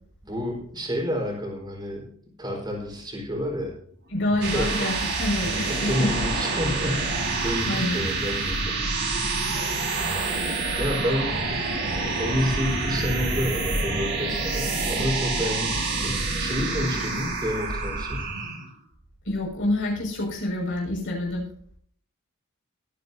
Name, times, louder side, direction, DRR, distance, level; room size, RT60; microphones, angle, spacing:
voice 1, 0.2-2.1 2.4-3.7 4.5-5.0 5.8-8.8 10.8-11.4 12.2-18.3, equal, 20° right, -1 dB, 4.5 m, -29 dB
voice 2, 4.1-6.3 7.7-8.0 19.2-21.5, left 1 dB, 60° left, -2 dB, 6.1 m, -27 dB
sound 1, 4.1-18.7, right 3 dB, 55° right, 5.0 m, -27 dB
23.0 x 9.5 x 2.8 m, 0.62 s
head